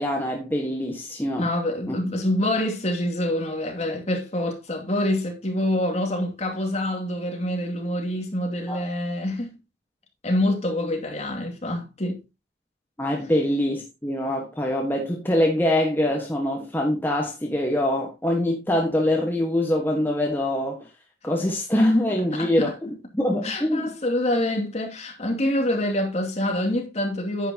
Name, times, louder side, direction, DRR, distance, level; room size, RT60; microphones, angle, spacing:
voice 1, 0.0-1.5 1.9-2.0 8.7-8.8 13.0-20.9 21.2-22.7 23.1-23.9, left 1 dB, 10° left, 1.4 m, -24 dB
voice 2, 1.4-9.5 10.2-12.2 21.4-21.5 22.3-22.7 23.4-27.5, left 1 dB, 40° left, 2.5 m, -26 dB
10.0 x 8.4 x 2.9 m
head